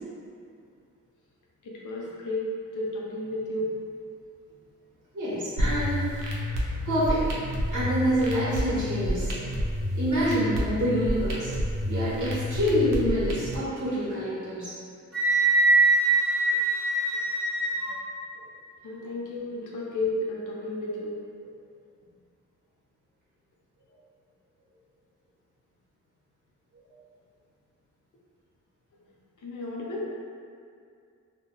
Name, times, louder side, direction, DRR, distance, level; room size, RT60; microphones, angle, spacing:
voice 1, 1.6-3.7 18.8-21.2 29.4-30.1, left 1 dB, 70° left, -4 dB, 0.6 m, -32 dB
voice 2, 5.1-6.0 6.8-7.3 7.7-9.4 9.9-11.5 11.9-14.7, equal, 70° right, -9 dB, 1.1 m, -26 dB
sound 1, 5.6-13.6, left 1 dB, 85° right, 0.6 m, -29 dB
Wind instrument woodwind instrument, 15.1-17.9, right 2 dB, ahead, 0.7 m, -22 dB
2.5 x 2.1 x 3.6 m, 2.3 s
wide cardioid pair, 170°, 32 cm